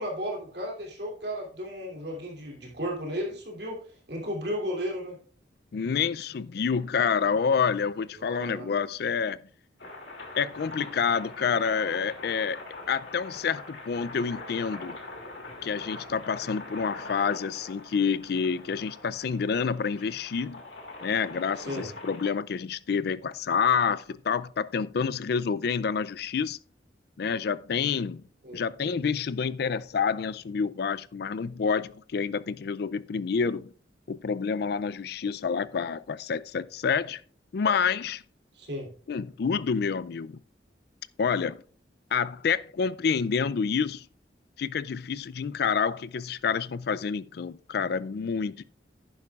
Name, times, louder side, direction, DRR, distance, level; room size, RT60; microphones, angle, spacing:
voice 1, 0.0-5.2 8.2-8.8 21.6-21.9 28.4-28.6 38.5-38.9, equal, 60° right, 2.9 m, -34 dB
voice 2, 5.7-9.4 10.4-12.6 12.9-15.0 15.6-20.6 21.0-26.6 27.2-28.2 28.5-33.7 34.1-37.2 37.5-38.2 39.1-40.4 41.2-41.6 42.1-44.1 44.6-48.6, left 6 dB, 60° left, 0.4 m, -28 dB
sound 1, 9.8-22.3, left 2 dB, 75° left, 2.6 m, -43 dB
11.0 x 9.9 x 2.4 m
head